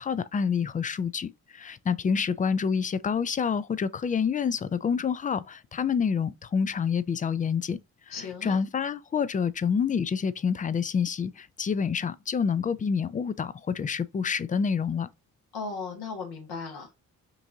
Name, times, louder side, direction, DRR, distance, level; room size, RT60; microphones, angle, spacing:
voice 1, 0.0-7.8 8.1-8.2 8.4-15.1, left 6 dB, 20° left, 0.3 m, -27 dB
voice 2, 8.1-8.6 15.5-17.0, left 4 dB, 65° left, 1.5 m, -36 dB
5.4 x 2.6 x 2.7 m
hypercardioid pair, 40°, 40 cm